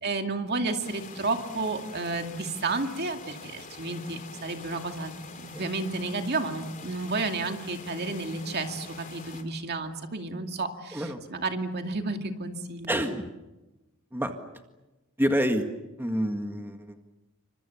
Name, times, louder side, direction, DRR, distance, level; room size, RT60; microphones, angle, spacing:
voice 1, 0.0-5.1 5.4-13.0, right 3 dB, 50° right, 5 dB, 2.4 m, -31 dB
sound 1, 0.8-9.4, left 4 dB, 40° left, 3.1 m, -45 dB
voice 2, 12.9-13.3 14.1-14.3 15.2-15.7 16.0-17.1, equal, 10° right, 5 dB, 1.8 m, -28 dB
29.0 x 25.5 x 7.1 m, 1.0 s
head